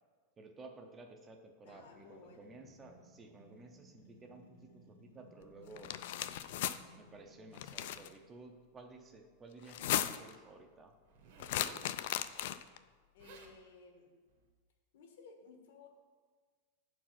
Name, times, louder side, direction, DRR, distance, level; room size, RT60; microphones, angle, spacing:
voice 1, 0.4-5.9 7.0-10.9, right 3 dB, 15° right, 4 dB, 0.5 m, -54 dB
sound 1, 1.6-8.4, left 2 dB, 85° left, 1.3 m, -61 dB
voice 2, 1.6-2.5 13.1-14.1 14.9-15.9, left 4 dB, 70° left, 3 dB, 1.4 m, -57 dB
sound 2, 5.7-6.8 7.5-8.1 9.6-10.3 11.4-12.8, left 12 dB, 55° left, 0.3 m, -36 dB
Zipper (clothing), 11.0-11.9 12.9-13.0 13.2-13.6 14.3-14.5, right 5 dB, 55° right, 1.1 m, -56 dB
8.4 x 4.6 x 5.7 m, 1.5 s
supercardioid pair, 170°, 0 cm